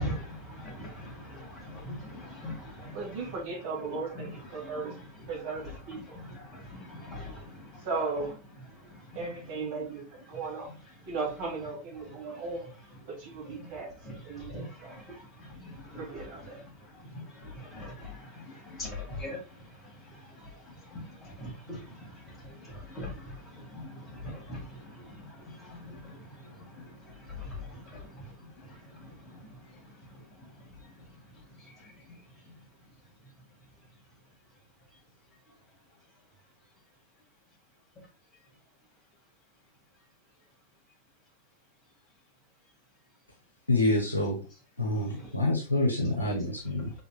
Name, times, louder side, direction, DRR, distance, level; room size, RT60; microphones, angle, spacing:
voice 1, 0.0-3.0 6.3-7.4 9.2-9.3 13.6-13.7 14.1-14.2 15.6-15.7 17.1-18.2 18.7-19.4 20.9-21.8 22.5-23.2 23.7-23.8 24.2-24.6 25.7-26.0 27.4-27.6 27.9-28.0, left 1 dB, 20° left, 2.1 m, -40 dB
voice 2, 2.9-4.9 5.3-6.2 7.8-8.3 9.1-10.7 11.1-12.7 13.1-13.9 14.2-15.0 16.0-16.6, right 4 dB, 50° right, 2.6 m, -36 dB
voice 3, 43.7-44.4 44.8-46.9, left 2 dB, 85° left, 1.2 m, -27 dB
5.2 x 4.2 x 2.4 m
figure-of-eight pair, 90°, 0 cm